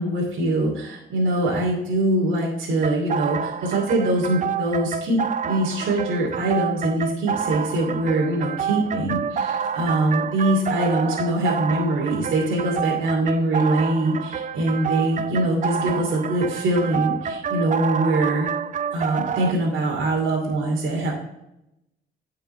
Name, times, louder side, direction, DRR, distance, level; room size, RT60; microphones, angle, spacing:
voice 1, 0.0-5.2 5.4-18.5 18.9-21.1, right 1 dB, 75° right, -2 dB, 2.5 m, -23 dB
sound 1, 2.8-19.5, right 7 dB, 40° right, 0.5 m, -28 dB
9.8 x 5.6 x 3.2 m, 0.86 s
cardioid pair, 90°, 20 cm